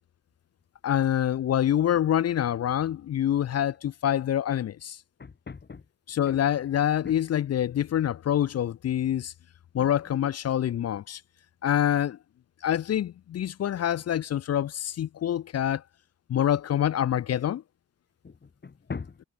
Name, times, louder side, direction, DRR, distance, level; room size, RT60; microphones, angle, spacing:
voice 1, 0.8-5.0 6.1-9.3 9.7-11.2 11.6-12.2 12.6-15.8 16.3-17.6, left 10 dB, 60° left, 0.4 m, -26 dB
voice 2, 5.2-5.8 6.3-6.4 7.0-7.2 9.8-9.9 18.2-19.2, left 5 dB, 35° left, 1.2 m, -40 dB
cardioid pair, 85°, 29 cm